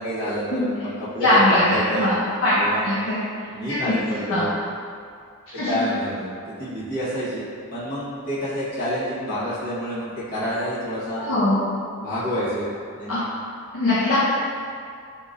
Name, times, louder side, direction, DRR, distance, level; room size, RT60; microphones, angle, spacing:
voice 1, 0.0-2.0 2.6-2.8 3.5-4.5 5.6-7.4 7.7-11.2 12.0-12.7 13.0-13.2, equal, 40° left, -12 dB, 1.2 m, -28 dB
voice 2, 1.2-2.1 2.4-2.6 2.8-3.3 3.7-3.9 4.3-4.5 5.5-5.8 11.2-11.5 13.1-13.2 13.7-14.2, left 1 dB, 60° left, -10 dB, 0.6 m, -21 dB
3.8 x 3.0 x 2.4 m, 2.3 s
head